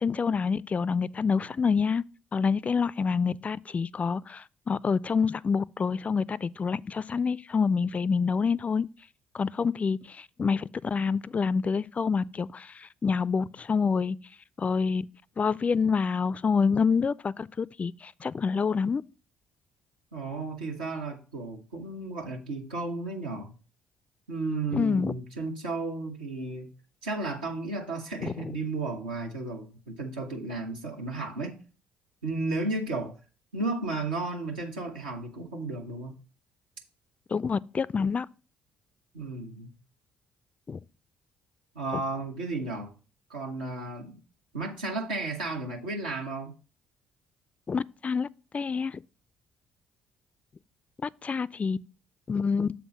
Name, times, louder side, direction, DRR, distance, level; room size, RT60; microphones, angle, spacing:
voice 1, 0.0-2.0 2.3-8.9 9.3-14.2 14.6-15.0 15.4-19.0 24.7-25.1 28.2-28.3 37.3-38.3 40.7-40.8 47.7-48.3 48.5-49.0 51.0-51.8 52.3-52.7, left 5 dB, 30° left, 0.3 m, -27 dB
voice 2, 20.1-23.5 24.3-26.7 27.0-31.6 32.2-33.1 33.5-36.1 39.1-39.7 41.7-42.9 43.3-44.2 44.5-46.5, right 3 dB, 80° right, 1.1 m, -33 dB
7.0 x 3.6 x 6.2 m
figure-of-eight pair, 50°, 5 cm